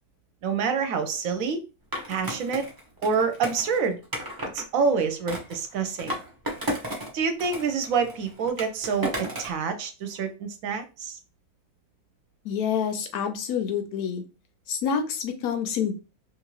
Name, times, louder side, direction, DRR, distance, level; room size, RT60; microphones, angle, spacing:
voice 1, 0.4-1.6 2.1-2.7 3.0-4.0 4.5-6.1 7.1-11.2, right 5 dB, 70° right, 8 dB, 0.9 m, -27 dB
Skateboard, 1.9-4.6 5.3-7.1 7.4-9.6, equal, 30° right, 0.4 m, -34 dB
voice 2, 12.4-14.2 14.7-15.9, left 7 dB, 80° left, 6 dB, 1.1 m, -27 dB
2.8 x 2.5 x 3.0 m, 0.30 s
omnidirectional pair, 1.6 m